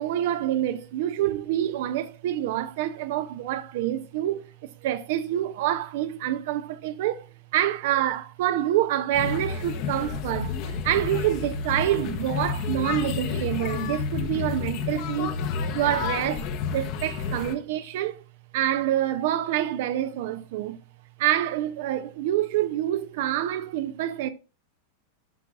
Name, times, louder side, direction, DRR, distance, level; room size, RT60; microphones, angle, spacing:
voice 1, 0.0-15.4 15.7-18.2 18.5-20.8 21.2-24.3, right 12 dB, 50° right, 0.5 m, -27 dB
sound 1, 9.1-17.5, left 6 dB, 45° left, 1.0 m, -30 dB
11.5 x 5.7 x 2.5 m
figure-of-eight pair, 90°, 0 cm